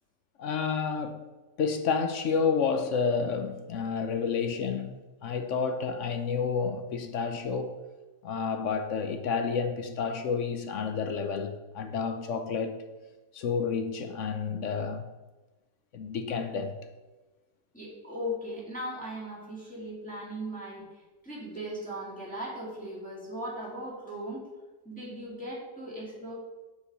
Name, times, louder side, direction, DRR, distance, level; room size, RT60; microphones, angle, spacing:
voice 1, 0.4-1.2 1.6-7.8 8.2-12.8 13.3-15.0 15.9-16.8, left 5 dB, 65° left, 0.8 m, -30 dB
voice 2, 17.7-20.8 21.2-24.4 24.8-26.3, equal, 5° left, 2.4 m, -38 dB
6.9 x 4.8 x 6.6 m
omnidirectional pair, 1.9 m